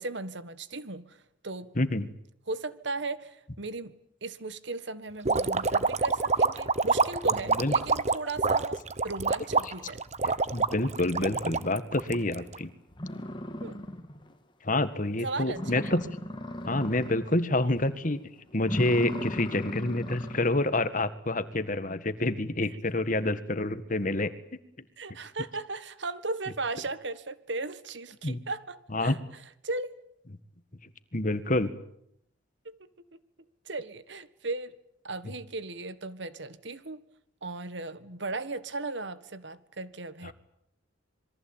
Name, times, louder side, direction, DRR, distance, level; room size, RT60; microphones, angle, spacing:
voice 1, 0.0-1.7 2.5-3.9 4.2-10.0 13.6-13.8 15.2-16.0 25.0-29.2 29.6-30.0 32.6-33.2 33.6-34.8 35.0-37.0 37.4-40.3, right 3 dB, 65° right, 1.6 m, -37 dB
voice 2, 1.8-2.1 7.6-7.7 9.6-9.7 10.2-12.7 14.6-16.0 16.7-18.2 18.5-24.3 28.2-28.4 28.9-29.2 31.1-31.7, left 2 dB, 40° left, 1.8 m, -28 dB
sound 1, 5.2-12.6, right 4 dB, 35° right, 1.1 m, -26 dB
sound 2, 12.5-12.6 12.9-14.3 14.7-14.8 15.2-15.3 15.5-17.4 17.8-18.1 18.6-20.6, equal, 25° left, 2.5 m, -37 dB
27.0 x 22.5 x 9.0 m
head